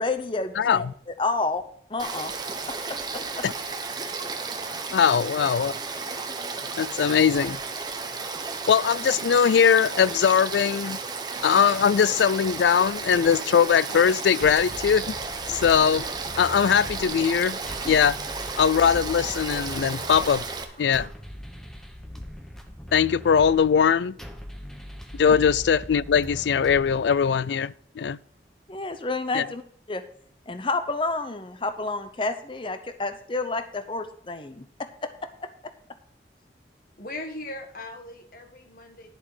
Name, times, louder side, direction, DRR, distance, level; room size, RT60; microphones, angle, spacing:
voice 1, 0.0-1.6 1.9-2.3 3.4-3.5 25.3-25.4 28.7-29.6 29.9-30.0 30.5-34.7 35.0-35.1 35.4-35.5, left 3 dB, 30° left, 0.7 m, -29 dB
voice 2, 0.6-0.9 3.4-3.5 4.9-5.8 6.8-7.6 8.7-11.0 11.4-15.2 15.5-16.0 16.4-17.6 17.9-18.2 18.6-20.4 20.8-21.1 22.9-24.2 25.1-28.2 29.3-29.4, left 7 dB, 80° left, 0.4 m, -21 dB
Frog / Stream, 2.0-20.6, right 4 dB, 25° right, 1.0 m, -33 dB
sound 1, 11.9-21.1, right 2 dB, 40° right, 1.4 m, -52 dB
sound 2, 14.4-27.4, equal, 5° left, 1.0 m, -41 dB
voice 3, 37.0-39.1, left 2 dB, 50° left, 1.8 m, -39 dB
11.0 x 7.3 x 4.9 m
head